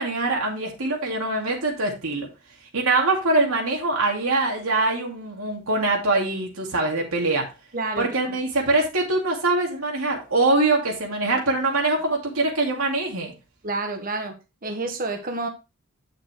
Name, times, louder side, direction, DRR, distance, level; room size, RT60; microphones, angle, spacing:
voice 1, 0.0-2.3 2.7-7.5 8.0-13.3, right 2 dB, 85° right, 2.4 m, -23 dB
voice 2, 7.7-8.4 13.6-15.5, right 3 dB, 40° right, 1.4 m, -29 dB
9.7 x 6.7 x 3.1 m
head